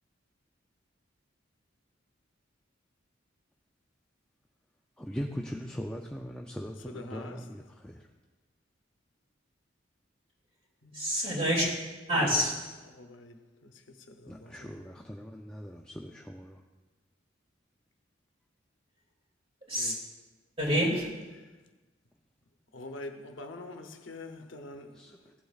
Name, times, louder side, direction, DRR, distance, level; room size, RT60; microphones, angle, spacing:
voice 1, 5.0-8.0 14.3-16.6 24.9-25.3, equal, 5° left, 0.4 m, -40 dB
voice 2, 6.9-7.5 10.8-11.0 12.1-12.5 12.9-14.7 19.8-19.9 21.4-21.5 22.7-25.2, left 2 dB, 75° left, 0.8 m, -45 dB
voice 3, 10.9-11.7 12.1-12.7 19.7-19.9 20.6-21.2, equal, 30° right, 2.6 m, -27 dB
16.0 x 8.2 x 2.4 m
head